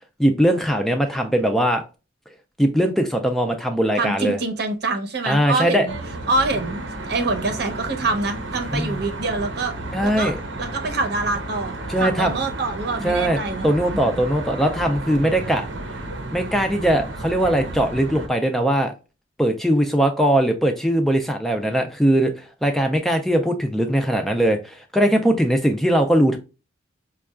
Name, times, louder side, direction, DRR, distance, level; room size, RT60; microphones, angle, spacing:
voice 1, 0.2-1.8 2.6-4.4 5.2-5.9 8.7-9.0 9.9-10.4 11.9-12.3 13.0-13.4 13.6-15.6 16.3-18.9 19.4-26.4, right 1 dB, ahead, 0.3 m, -20 dB
voice 2, 4.0-6.0 6.3-9.7 10.0-10.3 10.6-14.2, right 3 dB, 55° right, 0.7 m, -25 dB
Traffic noise roadway noise, 5.9-18.3, right 2 dB, 85° right, 0.8 m, -32 dB
5.2 x 2.3 x 2.3 m
head